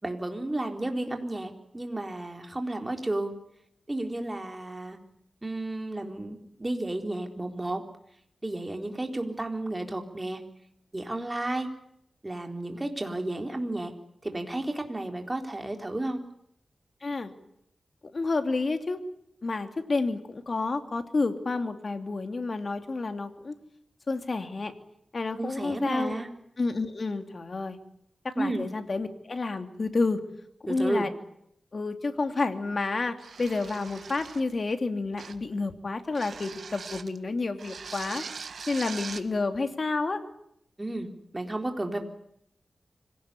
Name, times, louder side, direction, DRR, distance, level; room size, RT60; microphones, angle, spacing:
voice 1, 0.0-3.3 3.9-5.0 5.4-7.8 8.4-10.4 10.9-11.7 12.2-13.9 14.2-16.2 25.4-26.3 28.4-28.7 30.7-31.1 40.8-41.1 41.3-42.0, right 1 dB, 20° right, 4 dB, 4.1 m, -32 dB
voice 2, 17.0-17.3 18.1-19.0 19.4-23.5 24.1-24.7 25.1-26.2 26.6-27.8 28.2-30.2 30.6-31.1 31.7-38.2 38.7-40.2, left 3 dB, 50° left, 7 dB, 2.7 m, -30 dB
sound 1, 33.2-34.5 35.2-35.5 36.1-37.2 37.6-39.3, right 5 dB, 80° right, 1.6 m, -41 dB
25.5 x 17.5 x 9.9 m, 0.74 s
wide cardioid pair, 75°, 0 cm